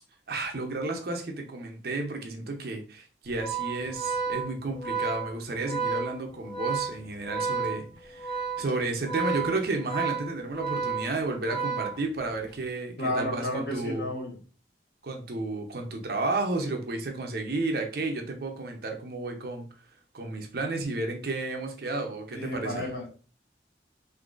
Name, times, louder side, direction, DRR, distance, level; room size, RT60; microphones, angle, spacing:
voice 1, 0.3-14.1 15.0-19.7 20.1-22.8, right 2 dB, 55° right, 4 dB, 0.6 m, -32 dB
Organ, 3.3-12.5, right 5 dB, 25° left, 0.7 m, -32 dB
voice 2, 13.0-14.4 16.7-16.8 22.3-23.1, left 1 dB, 55° left, -3 dB, 1.4 m, -32 dB
3.8 x 2.7 x 2.4 m, 0.37 s
head